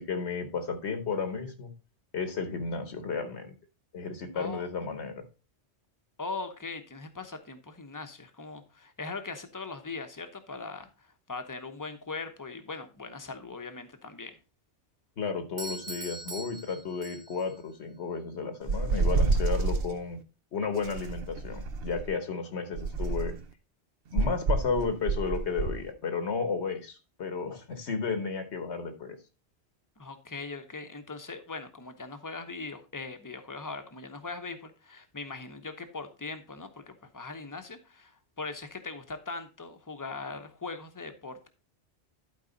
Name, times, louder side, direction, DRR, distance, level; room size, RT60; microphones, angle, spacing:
voice 1, 0.0-1.7 2.1-3.5 3.9-5.2 15.2-20.2 20.5-23.3 24.1-29.2, left 5 dB, 75° left, 7 dB, 1.4 m, -33 dB
voice 2, 4.3-4.7 6.2-14.3 30.0-41.5, left 3 dB, 20° left, 8 dB, 0.8 m, -40 dB
Doorbell, 15.6-17.6, right 2 dB, 25° right, 0.5 m, -42 dB
sound 1, 18.7-19.9 20.8-22.1 22.7-23.4 24.2-25.8, right 3 dB, 60° right, 1.0 m, -28 dB
11.5 x 4.8 x 3.9 m, 0.31 s
omnidirectional pair, 1.1 m